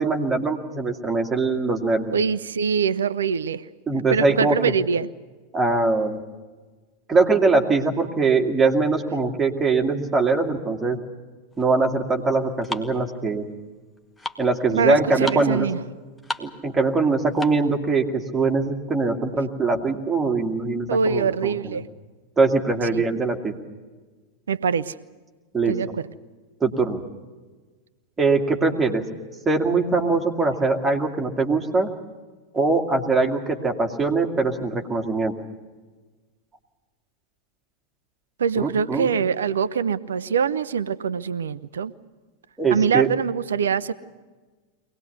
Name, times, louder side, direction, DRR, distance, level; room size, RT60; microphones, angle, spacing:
voice 1, 0.0-2.2 3.9-4.7 5.5-6.2 7.1-11.0 11.6-13.5 14.4-15.7 16.4-21.5 22.4-23.5 25.5-25.7 26.6-27.0 28.2-29.0 29.5-31.9 32.5-35.3 38.6-39.1 42.6-43.1, right 3 dB, 15° right, 2 dB, 2.2 m, -22 dB
voice 2, 2.1-3.6 4.1-5.1 14.7-15.8 20.9-21.9 22.9-23.0 24.5-24.9 25.7-26.1 38.4-41.9 42.7-43.9, right 6 dB, 65° right, 16 dB, 0.7 m, -23 dB
sound 1, 11.5-17.8, left 2 dB, 10° left, 1.3 m, -36 dB
23.5 x 19.0 x 8.2 m, 1.3 s
figure-of-eight pair, 90°, 0 cm